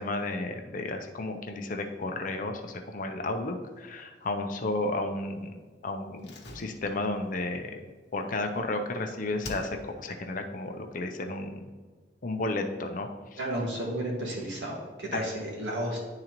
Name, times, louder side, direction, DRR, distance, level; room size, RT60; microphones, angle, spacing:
voice 1, 0.0-5.5 5.8-7.8 8.1-11.7 12.2-13.4 15.1-15.3, left 2 dB, 50° left, 5 dB, 0.6 m, -33 dB
Slam, 6.2-8.9 9.4-10.2 10.4-10.5, left 2 dB, 70° left, 1.0 m, -46 dB
voice 2, 13.4-16.0, right 1 dB, 90° right, -3 dB, 1.8 m, -33 dB
10.5 x 3.8 x 3.0 m, 1.4 s
head